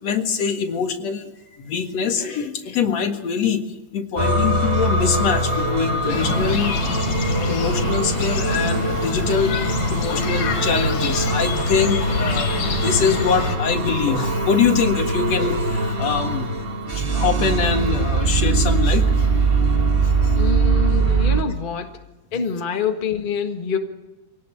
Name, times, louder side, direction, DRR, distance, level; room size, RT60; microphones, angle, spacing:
voice 1, 0.0-1.3 1.6-3.6 3.9-6.8 7.5-16.5 17.1-19.5 20.0-20.4, left 6 dB, 60° left, 5 dB, 2.8 m, -24 dB
sound 1, 4.2-21.4, right 3 dB, 30° right, 1.1 m, -22 dB
sound 2, 6.1-13.6, left 4 dB, 90° left, 3.9 m, -26 dB
voice 2, 20.3-22.0 22.3-23.8, left 5 dB, 30° left, 4 dB, 1.0 m, -26 dB
24.5 x 18.0 x 8.8 m, 1.1 s
omnidirectional pair, 3.6 m